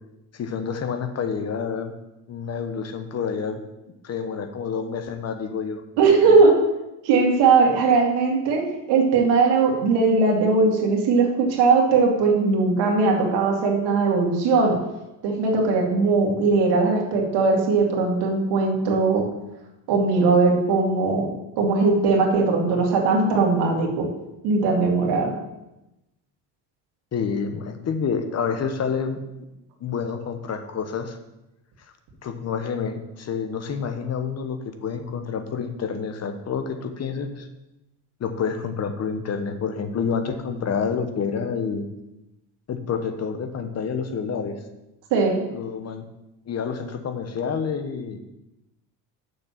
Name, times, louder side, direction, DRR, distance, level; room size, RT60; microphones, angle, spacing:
voice 1, 0.3-1.9 2.3-3.6 4.0-5.8 6.1-6.3 27.1-29.2 29.8-31.2 32.2-37.5 38.2-41.9 42.7-44.6 45.5-46.0 46.5-48.2, left 6 dB, 40° left, 7 dB, 1.1 m, -28 dB
voice 2, 6.0-6.6 7.0-14.8 15.2-19.2 19.9-21.3 21.6-24.1 24.4-25.3 45.1-45.4, right 4 dB, 85° right, 0 dB, 2.3 m, -19 dB
6.9 x 6.6 x 5.7 m, 0.95 s
cardioid pair, 115°, 40 cm